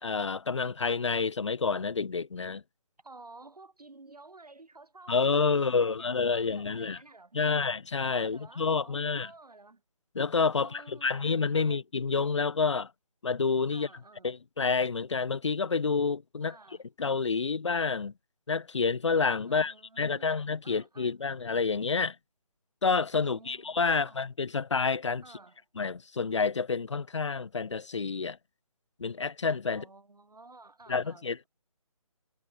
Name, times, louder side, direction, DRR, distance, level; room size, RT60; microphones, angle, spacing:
voice 1, 0.0-2.6 5.1-7.0 7.3-9.3 10.1-12.9 13.2-13.9 14.2-16.6 17.0-18.1 18.5-22.2 22.8-25.2 25.8-28.4 29.0-29.8 30.9-31.4, left 5 dB, 50° left, 0.6 m, -29 dB
voice 2, 3.0-7.7 8.1-9.8 10.6-11.8 13.7-14.4 16.4-16.8 19.5-21.2 23.2-24.2 25.2-25.6 29.7-31.5, right 3 dB, 90° right, 6.2 m, -53 dB
figure-of-eight pair, 170°, 19 cm